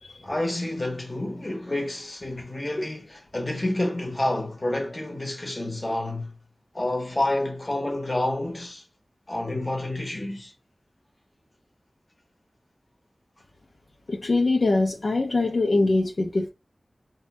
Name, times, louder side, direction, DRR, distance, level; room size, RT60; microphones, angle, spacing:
voice 1, 0.2-3.1 3.3-6.4 6.7-8.8 9.3-10.5, left 1 dB, 35° left, 0.9 m, -29 dB
voice 2, 14.1-16.5, left 2 dB, 70° left, 0.5 m, -23 dB
2.7 x 2.2 x 2.7 m
wide cardioid pair, 70°, 0 cm